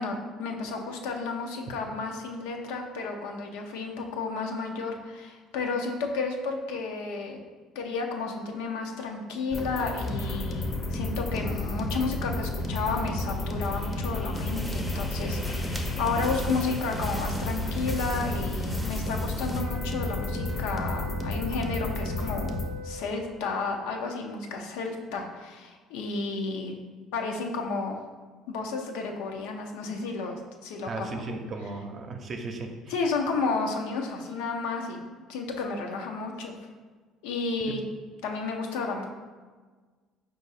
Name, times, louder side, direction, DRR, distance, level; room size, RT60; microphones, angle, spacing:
voice 1, 0.0-7.4 7.7-22.5 22.8-26.7 27.1-28.0 28.5-31.1 32.9-35.0 35.3-36.5 37.2-37.8 38.2-39.1, left 4 dB, 85° left, 2 dB, 0.6 m, -32 dB
sound 1, 9.5-22.7, left 2 dB, 35° left, 0.6 m, -31 dB
sound 2, 14.3-19.6, right 1 dB, 10° right, 0.6 m, -37 dB
sound 3, 19.6-23.5, left 3 dB, 90° right, 0.6 m, -42 dB
voice 2, 30.9-33.0 37.7-37.8, right 3 dB, 45° right, 4 dB, 0.6 m, -36 dB
4.6 x 2.5 x 4.0 m, 1.4 s
supercardioid pair, 75°, 0 cm